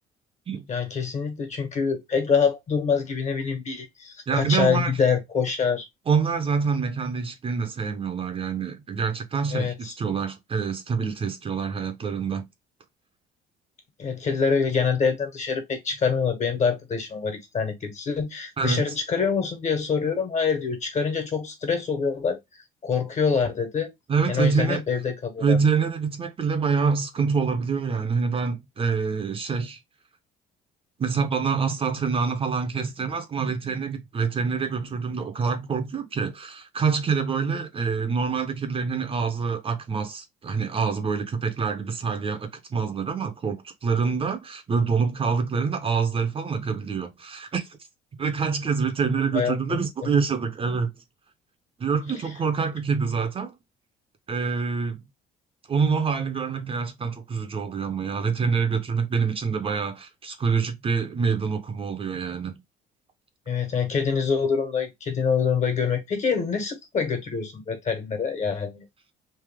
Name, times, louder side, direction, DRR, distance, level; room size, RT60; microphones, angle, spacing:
voice 1, 0.7-5.9 9.5-9.9 14.0-22.4 22.8-23.9 24.3-25.6 49.3-50.1 52.1-52.2 63.5-68.8, left 6 dB, 45° left, 1.6 m, -25 dB
voice 2, 4.3-4.9 6.1-12.5 18.6-18.9 24.1-24.8 25.4-29.8 31.0-47.7 48.2-50.9 51.8-53.5 54.3-55.0 55.7-62.6, right 5 dB, 35° right, 0.8 m, -26 dB
3.4 x 2.7 x 3.5 m
cardioid pair, 110°, 17 cm